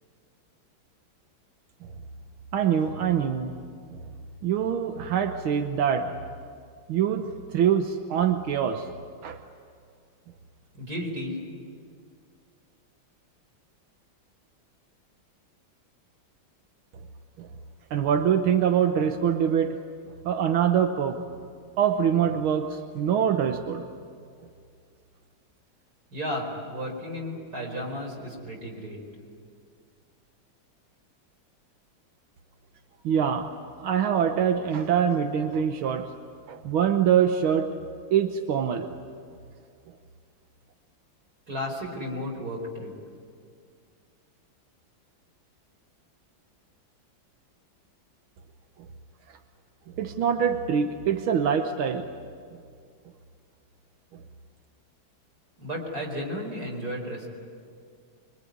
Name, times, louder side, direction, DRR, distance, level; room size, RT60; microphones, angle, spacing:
voice 1, 2.5-3.5 3.9-4.0 4.4-6.2 6.9-8.9 9.2-9.4 17.4-17.5 17.9-19.8 20.1-21.3 21.8-23.9 33.0-33.5 33.8-36.1 36.5-37.8 38.1-39.0 50.0-52.1 54.1-54.2, right 8 dB, 90° right, 6 dB, 1.8 m, -24 dB
voice 2, 10.7-11.4 26.1-29.0 41.5-42.9 55.6-57.3, equal, 45° right, 0 dB, 5.4 m, -33 dB
25.0 x 24.0 x 9.4 m, 2.2 s
omnidirectional pair, 2.2 m